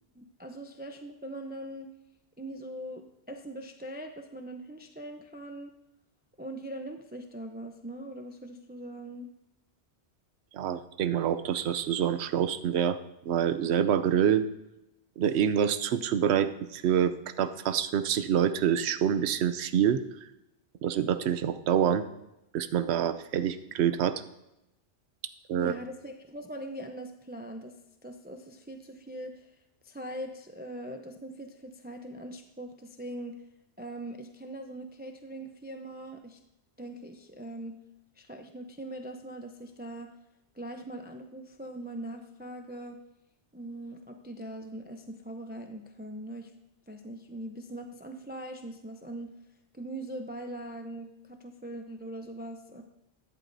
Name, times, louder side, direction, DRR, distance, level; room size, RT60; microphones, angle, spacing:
voice 1, 0.2-1.9 2.4-5.7 6.4-9.3 25.6-27.7 28.0-29.5 29.8-33.4 33.8-36.4 36.8-37.8 38.2-40.1 40.5-43.0 43.5-46.5 46.9-49.3 49.7-52.8, right 1 dB, 10° right, 5 dB, 0.5 m, -41 dB
voice 2, 10.5-13.0 13.2-14.5 15.2-20.0 20.8-22.0 22.5-24.2 25.5-25.7, right 9 dB, 85° right, 12 dB, 0.9 m, -26 dB
12.0 x 11.0 x 2.7 m, 0.89 s
omnidirectional pair, 1.1 m